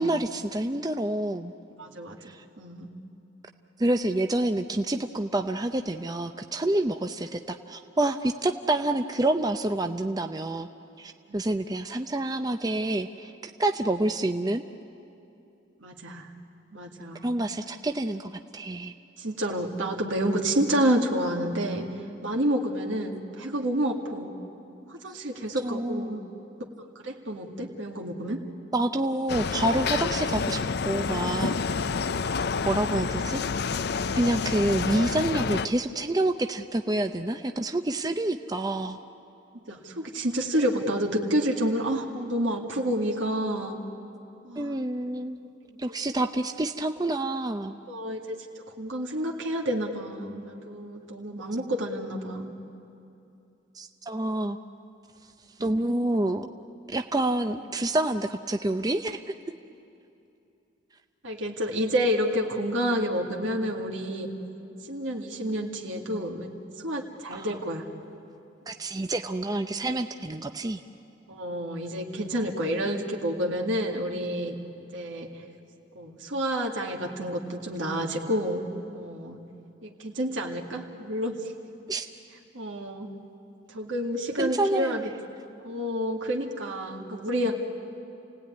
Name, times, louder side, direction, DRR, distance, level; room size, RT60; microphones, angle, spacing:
voice 1, 0.0-1.5 2.2-2.4 3.8-10.7 11.0-14.6 17.2-18.9 25.6-26.2 28.7-31.5 32.2-32.4 32.6-33.4 34.1-39.0 44.6-45.4 45.8-47.8 53.7-54.6 55.6-56.5 56.9-59.3 67.3-67.5 68.7-70.8 81.9-82.1 84.4-85.0, right 1 dB, 20° right, 6 dB, 0.6 m, -28 dB
voice 2, 1.8-2.2 2.6-2.9 11.3-11.4 15.8-16.3 16.7-17.4 19.2-21.8 22.2-24.3 24.9-26.2 27.0-28.4 39.7-43.8 44.4-44.8 47.9-52.6 55.6-56.0 61.2-64.3 64.9-67.9 71.3-75.3 76.0-79.4 79.8-81.4 82.5-83.1 83.7-85.1 85.6-87.6, equal, 80° right, 0 dB, 2.1 m, -29 dB
sound 1, 29.3-35.7, left 5 dB, 55° left, 0.5 m, -28 dB
29.5 x 18.0 x 9.7 m, 2.7 s
head